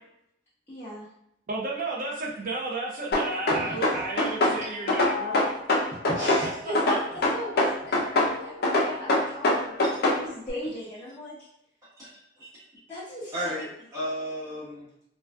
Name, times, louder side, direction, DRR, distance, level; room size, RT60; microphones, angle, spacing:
voice 1, 0.7-1.1 3.5-4.3 6.1-9.8 10.1-11.4 12.9-13.5, equal, 10° left, -12 dB, 0.6 m, -36 dB
voice 2, 1.5-5.5 6.4-7.0, right 2 dB, 45° right, -2 dB, 0.5 m, -33 dB
sound 1, 3.1-4.6 4.9-6.4 6.7-8.3 8.6-10.2, left 2 dB, 55° left, 0.5 m, -22 dB
Piano, 3.9-10.6, left 4 dB, 85° right, 0.8 m, -43 dB
voice 3, 13.3-14.9, equal, 20° right, -11 dB, 1.0 m, -34 dB
2.4 x 2.2 x 2.2 m, 0.76 s
head